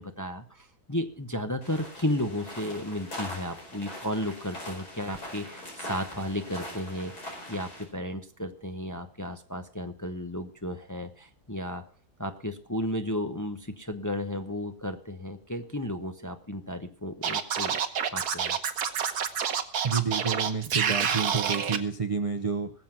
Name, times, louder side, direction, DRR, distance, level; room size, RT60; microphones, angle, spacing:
voice 1, 0.0-11.8 12.2-17.8 18.1-18.6, left 1 dB, 15° left, 7 dB, 0.7 m, -34 dB
sound 1, 1.6-7.8, left 1 dB, 85° left, 5.3 m, -41 dB
Scratching (performance technique), 17.2-21.8, right 7 dB, 85° right, 1.6 m, -28 dB
voice 2, 19.8-22.7, right 5 dB, 35° right, 9 dB, 0.5 m, -29 dB
19.0 x 7.7 x 5.9 m, 0.42 s
omnidirectional pair, 1.6 m